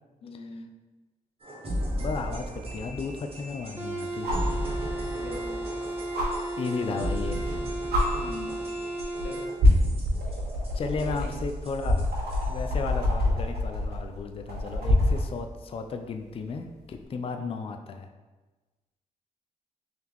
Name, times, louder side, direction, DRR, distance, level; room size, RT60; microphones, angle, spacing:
voice 1, 0.2-0.7 5.2-5.8 8.2-8.6 9.2-9.5 10.9-11.4 13.0-13.2 17.4-17.6, left 2 dB, 90° left, 2 dB, 0.6 m, -41 dB
sound 1, 1.4-12.7, equal, 40° right, 1.2 m, -35 dB
voice 2, 2.0-4.4 5.8-5.9 6.6-7.6 10.7-12.1 12.5-18.1, left 4 dB, 35° left, 5 dB, 0.4 m, -34 dB
sound 2, 2.0-2.1 4.2-4.5 6.1-6.3 7.4-7.5 7.9-8.0 9.0-9.2 9.6-15.3 16.9-17.0, left 1 dB, 75° right, 1.2 m, -25 dB
sound 3, 3.8-9.5, right 2 dB, 15° right, 1.1 m, -34 dB
3.8 x 2.9 x 3.5 m, 1.2 s
supercardioid pair, 60°, 16 cm